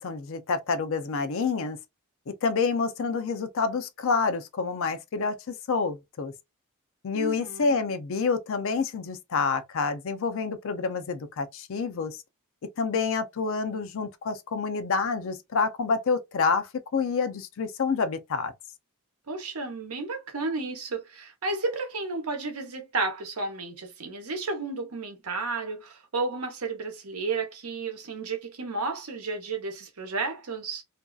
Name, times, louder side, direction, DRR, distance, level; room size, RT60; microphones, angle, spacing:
voice 1, 0.0-1.8 2.3-6.3 7.0-12.2 12.8-18.5, left 4 dB, 65° left, 0.5 m, -28 dB
voice 2, 7.1-7.7 19.3-30.8, right 3 dB, 80° right, 0.8 m, -32 dB
2.6 x 2.3 x 2.3 m
head